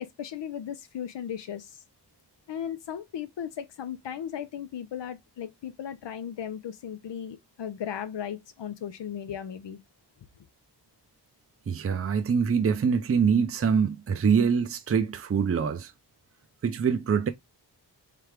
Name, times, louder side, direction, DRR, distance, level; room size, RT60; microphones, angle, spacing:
voice 1, 0.0-1.8 2.5-9.8, left 9 dB, 85° left, 0.7 m, -36 dB
voice 2, 11.7-15.9 16.6-17.3, right 6 dB, 35° right, 0.5 m, -24 dB
3.7 x 3.3 x 3.2 m
wide cardioid pair, 95°, 42 cm